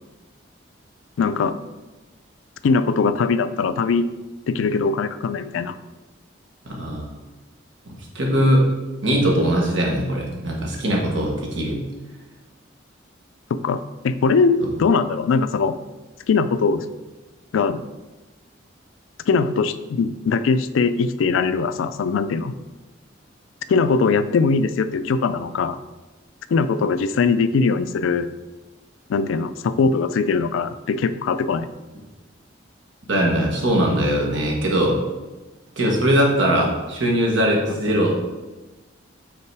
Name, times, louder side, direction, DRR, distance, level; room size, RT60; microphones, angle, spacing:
voice 1, 1.2-1.5 2.6-4.0 4.5-5.8 13.5-15.8 16.3-16.9 17.5-17.8 19.3-22.6 23.7-25.8 26.5-28.3 29.1-31.7, left 4 dB, 80° left, 13 dB, 0.3 m, -21 dB
voice 2, 6.6-7.1 8.1-8.6 9.0-11.8 33.1-35.0 35.8-38.1, equal, 70° right, -1 dB, 1.4 m, -20 dB
5.7 x 4.0 x 4.7 m, 1.2 s
head